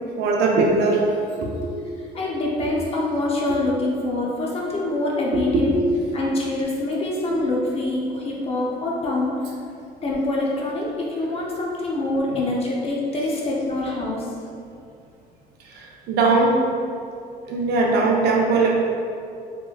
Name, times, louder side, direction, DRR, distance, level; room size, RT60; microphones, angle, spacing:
voice 1, 0.2-1.0 1.4-1.8 2.6-2.7 3.5-3.6 5.3-6.0 7.3-7.4 12.3-12.4 15.6-16.7 17.5-18.8, right 3 dB, 75° right, -1 dB, 0.6 m, -21 dB
voice 2, 2.1-5.8 6.1-9.4 10.0-14.3, left 2 dB, 35° left, -3 dB, 0.6 m, -25 dB
3.2 x 3.0 x 2.3 m, 2.4 s
cardioid pair, 110°, 17 cm